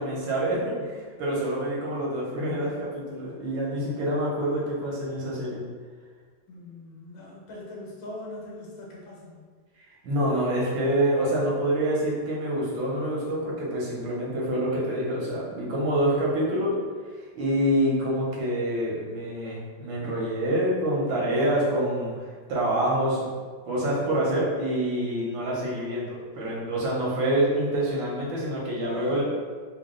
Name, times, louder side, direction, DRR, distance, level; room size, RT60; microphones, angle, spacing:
voice 1, 0.0-5.6 10.0-16.8 17.4-22.2 22.5-23.3 23.7-29.2, right 1 dB, 85° right, -5 dB, 1.8 m, -26 dB
voice 2, 6.5-9.4 28.9-29.2, left 1 dB, 85° left, -3 dB, 1.7 m, -42 dB
4.0 x 2.3 x 3.7 m, 1.5 s
omnidirectional pair, 2.1 m